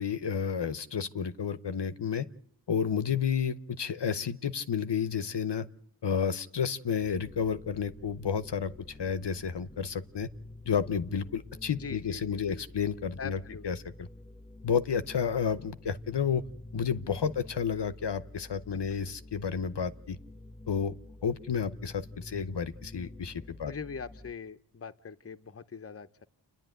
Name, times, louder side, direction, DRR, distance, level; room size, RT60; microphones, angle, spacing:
voice 1, 0.0-2.3 2.7-5.7 6.0-8.7 9.0-10.3 10.7-13.4 13.6-14.1 14.6-16.4 16.7-20.2 20.7-20.9 21.2-23.7, left 7 dB, 60° left, 13 dB, 0.8 m, -31 dB
sound 1, 7.0-24.3, left 2 dB, 15° left, 1.2 m, -49 dB
voice 2, 11.7-12.6 13.2-13.6 18.7-18.8 23.6-26.3, left 5 dB, 30° left, 11 dB, 0.8 m, -42 dB
29.0 x 10.5 x 9.2 m, 0.67 s
wide cardioid pair, 60°, 46 cm